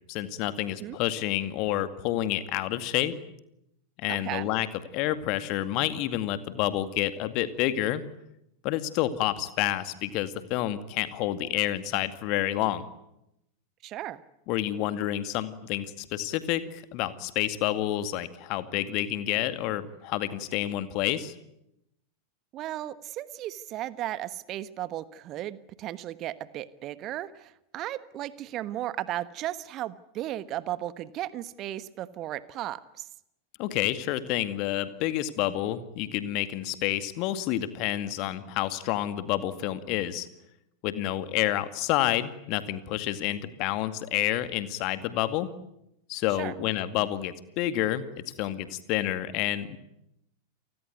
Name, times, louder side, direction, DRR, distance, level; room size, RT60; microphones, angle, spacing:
voice 1, 0.1-3.2 4.0-4.7 4.9-8.0 8.6-12.9 14.5-21.3 33.6-40.3 40.8-45.5 46.1-49.8, left 13 dB, 40° left, 12 dB, 2.1 m, -29 dB
voice 2, 4.1-4.5 13.8-14.2 22.5-33.1 46.3-46.5, right 13 dB, 35° right, 16 dB, 1.3 m, -35 dB
29.5 x 20.0 x 9.5 m, 0.82 s
figure-of-eight pair, 90°, 0 cm